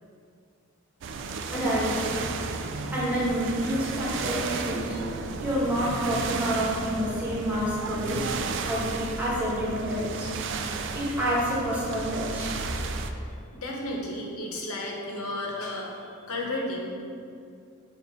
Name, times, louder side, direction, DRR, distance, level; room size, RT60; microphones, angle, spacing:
sound 1, 1.0-13.1, right 4 dB, 55° right, 0.3 m, -33 dB
voice 1, 1.5-2.0 2.9-5.0 5.4-8.2 8.7-10.6 10.9-12.5, equal, 10° right, -9 dB, 1.4 m, -28 dB
voice 2, 13.5-16.9, left 1 dB, 90° left, -1 dB, 1.0 m, -33 dB
7.6 x 2.6 x 5.0 m, 2.4 s
head